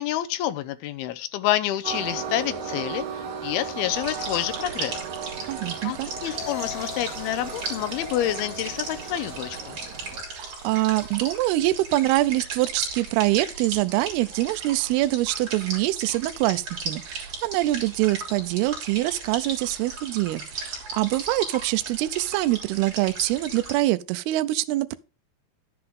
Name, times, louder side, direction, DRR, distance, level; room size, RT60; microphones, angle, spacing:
voice 1, 0.0-5.0 5.8-9.8, left 13 dB, 75° left, 2.5 m, -28 dB
Train, 1.8-10.2, right 5 dB, 60° right, 3.0 m, -36 dB
sound 1, 3.9-23.8, right 4 dB, 40° right, 4.1 m, -37 dB
voice 2, 5.5-6.1 10.4-25.0, right 17 dB, 80° right, 2.5 m, -24 dB
sound 2, 6.2-14.3 15.6-15.9, left 7 dB, 10° left, 6.4 m, -44 dB
11.0 x 7.8 x 3.6 m
omnidirectional pair, 4.8 m